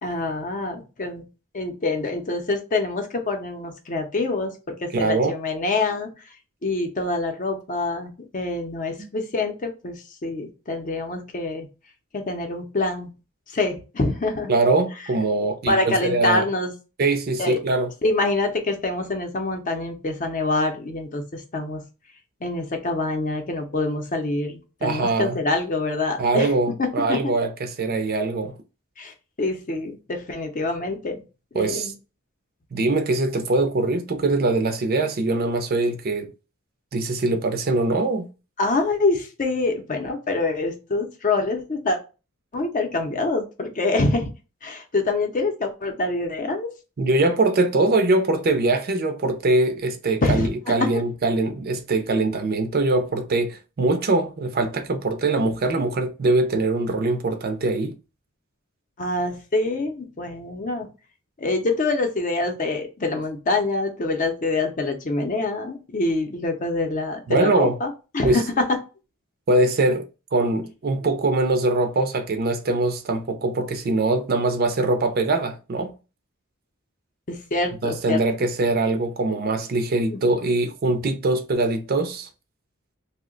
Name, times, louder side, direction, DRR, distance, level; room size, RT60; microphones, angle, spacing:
voice 1, 0.0-1.2 1.5-4.5 4.8-6.1 6.6-11.7 12.1-13.1 13.5-14.5 15.7-16.7 17.4-17.6 18.0-21.8 22.4-26.5 27.1-27.3 29.0-31.2 31.5-31.9 38.6-42.0 42.5-44.3 44.6-46.7 50.2-50.5 59.0-60.9 61.4-68.7 77.3-78.2 80.1-80.2, left 2 dB, 40° left, 0.6 m, -25 dB
voice 2, 4.9-5.3 9.0-9.1 14.5-16.4 17.0-17.9 24.8-25.4 26.2-28.6 31.5-31.9 32.7-36.3 36.9-38.3 47.0-58.0 67.3-67.8 68.2-68.4 69.5-75.9 77.8-82.3, right 2 dB, 45° right, 0.5 m, -22 dB
2.8 x 2.1 x 3.7 m
head